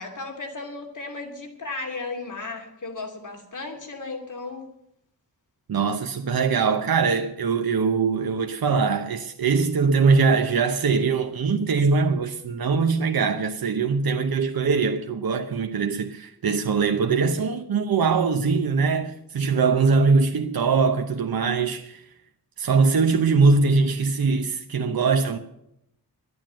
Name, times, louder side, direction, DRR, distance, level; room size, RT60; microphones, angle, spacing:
voice 1, 0.0-4.6, left 3 dB, 55° left, 2.9 m, -35 dB
voice 2, 5.7-22.0 22.6-25.4, right 4 dB, 70° right, 0.9 m, -22 dB
12.0 x 9.7 x 8.9 m
wide cardioid pair, 120°, 37 cm